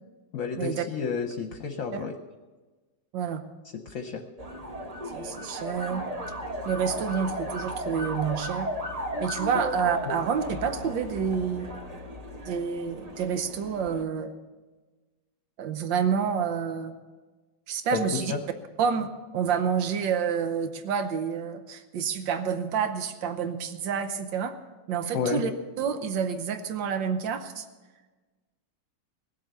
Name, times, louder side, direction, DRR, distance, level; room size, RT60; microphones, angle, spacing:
voice 1, 0.3-2.1 3.9-4.2 9.5-9.6 17.9-18.0 18.3-18.4 25.1-25.4, left 6 dB, 55° left, 5 dB, 1.1 m, -30 dB
sound 1, 4.4-14.0, equal, 25° right, 0.9 m, -35 dB
voice 2, 5.1-6.0 6.6-8.7 9.2-11.7 12.5-14.3 15.6-17.0 17.7-18.3 18.8-24.6 24.9-25.5 25.8-27.6, right 7 dB, 90° right, 9 dB, 1.6 m, -28 dB
19.0 x 7.8 x 6.7 m, 1.3 s
omnidirectional pair, 2.0 m